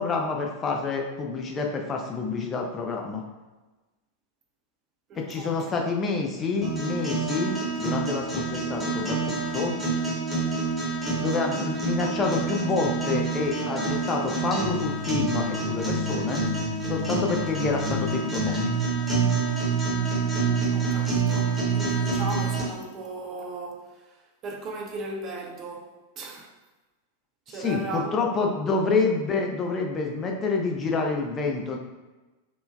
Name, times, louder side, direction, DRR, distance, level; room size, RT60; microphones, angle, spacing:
voice 1, 0.0-3.2 5.2-9.7 11.2-16.4 16.9-18.5 27.5-31.8, left 4 dB, 25° left, 0.4 m, -28 dB
voice 2, 5.1-5.7 20.3-23.9 24.4-26.5 27.5-28.2 28.6-28.7, right 2 dB, 30° right, 0.5 m, -37 dB
sound 1, 6.6-22.6, right 3 dB, 10° right, 0.8 m, -27 dB
3.7 x 2.1 x 2.4 m
figure-of-eight pair, 90°, 0 cm